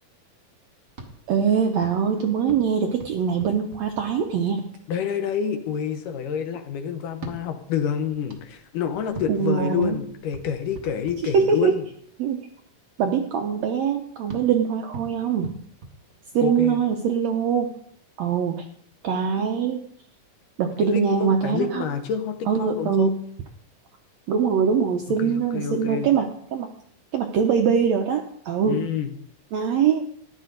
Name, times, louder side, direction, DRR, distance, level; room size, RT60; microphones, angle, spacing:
sound 1, 0.9-4.7 7.1-11.9 14.3-16.7, right 2 dB, 55° right, 0.8 m, -44 dB
voice 1, 1.3-4.7 9.3-10.0 11.3-11.7 12.2-12.5 13.0-15.6 16.3-17.7 18.2-18.6 19.0-19.8 20.6-21.8 22.5-23.2 24.3-26.7 27.1-28.8 29.5-30.0, right 6 dB, 75° right, 3 dB, 1.6 m, -23 dB
voice 2, 4.9-11.8 16.4-16.8 20.8-23.1 25.2-26.1 28.7-29.1, left 7 dB, 75° left, 7 dB, 2.4 m, -28 dB
14.5 x 11.0 x 3.9 m, 0.66 s
omnidirectional pair, 4.1 m